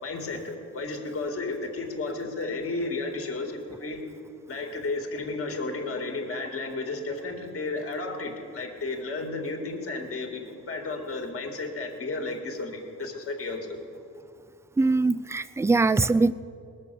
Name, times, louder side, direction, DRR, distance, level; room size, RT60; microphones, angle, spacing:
voice 1, 0.0-4.0 4.5-13.8, left 3 dB, 50° left, 3 dB, 2.1 m, -33 dB
voice 2, 14.8-16.3, right 3 dB, 10° right, 16 dB, 0.3 m, -22 dB
19.5 x 7.0 x 6.8 m, 2.5 s
cardioid pair, 90°, 30 cm